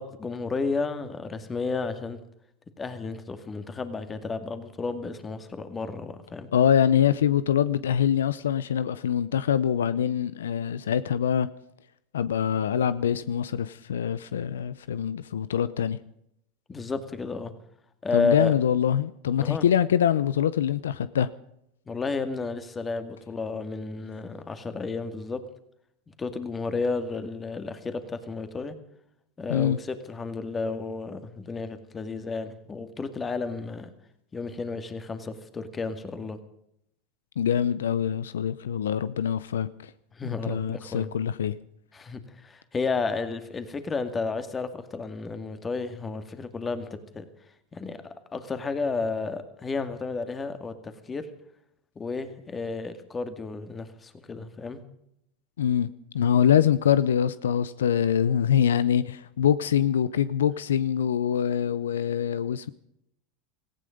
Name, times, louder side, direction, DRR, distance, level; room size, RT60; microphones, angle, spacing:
voice 1, 0.0-2.2 2.8-6.5 16.7-17.5 18.0-18.5 19.4-19.7 21.9-25.4 26.2-28.8 29.4-33.9 34.3-36.4 40.1-41.1 41.9-47.3 47.7-48.0 48.3-51.3 52.0-54.8, left 4 dB, 20° left, 2.2 m, -32 dB
voice 2, 6.5-11.5 12.1-16.0 18.1-21.3 29.5-29.8 37.4-39.9 40.2-41.5 55.6-55.9 56.1-62.7, left 9 dB, 90° left, 0.6 m, -24 dB
18.0 x 15.5 x 5.2 m
hypercardioid pair, 100°, 0 cm